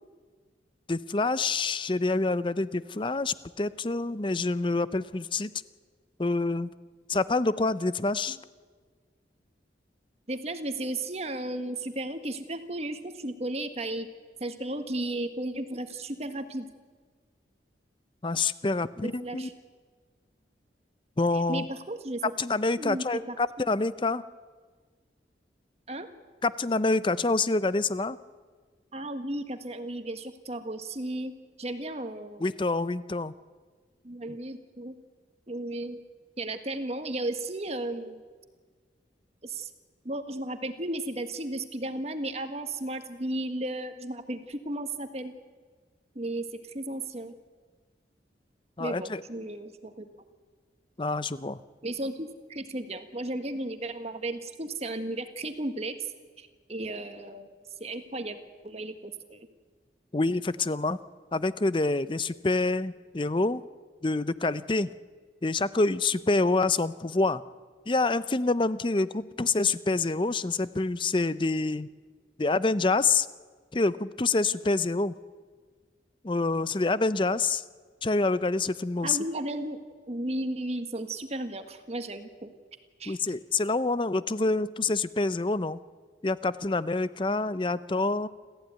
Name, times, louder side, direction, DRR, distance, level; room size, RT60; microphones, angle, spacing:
voice 1, 0.9-5.5 6.2-6.7 7.1-8.4 18.2-19.5 21.2-21.7 22.2-24.2 26.4-28.2 32.4-33.3 48.8-49.2 51.0-51.6 60.1-61.0 61.3-63.6 64.0-64.9 65.4-67.4 67.9-71.9 72.4-73.3 73.7-75.1 76.2-77.6 78.0-79.2 83.1-85.8 86.2-88.3, left 3 dB, 30° left, 16 dB, 0.6 m, -27 dB
voice 2, 10.3-14.1 14.4-16.7 19.0-19.5 21.3-22.2 22.8-23.6 25.9-26.1 28.9-31.3 31.6-32.4 34.0-34.9 35.5-36.0 36.4-38.2 39.4-39.7 40.0-45.3 46.1-47.3 48.8-50.1 51.8-56.0 56.4-57.5 57.8-58.4 58.6-59.5 79.0-79.8 80.1-82.5 83.0-83.2, right 1 dB, 35° right, 8 dB, 1.6 m, -34 dB
27.5 x 14.5 x 9.4 m, 1.5 s
head